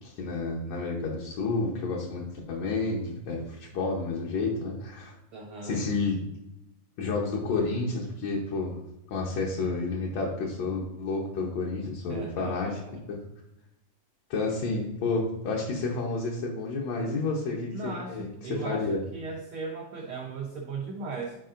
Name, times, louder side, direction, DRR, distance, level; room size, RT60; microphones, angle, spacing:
voice 1, 0.0-5.1 5.6-6.2 7.0-8.8 9.1-13.2 14.3-19.0, left 3 dB, 70° left, -3 dB, 1.9 m, -30 dB
voice 2, 5.3-5.8 12.1-13.0 17.7-21.4, right 4 dB, 85° right, 0 dB, 1.2 m, -37 dB
10.0 x 4.7 x 2.5 m, 0.88 s
omnidirectional pair, 3.4 m